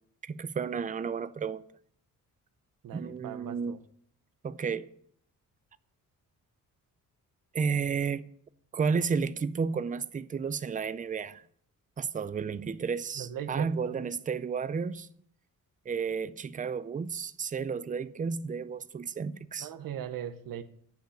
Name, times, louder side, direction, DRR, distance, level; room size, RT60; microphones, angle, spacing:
voice 1, 0.2-1.6 2.9-3.8 4.4-4.9 7.5-8.3 8.7-11.4 12.0-15.1 15.9-19.7, right 5 dB, 25° right, 0.5 m, -32 dB
voice 2, 2.8-3.8 13.2-14.0 19.6-20.6, right 9 dB, 90° right, 1.0 m, -39 dB
10.5 x 5.8 x 8.6 m
wide cardioid pair, 140°, 33 cm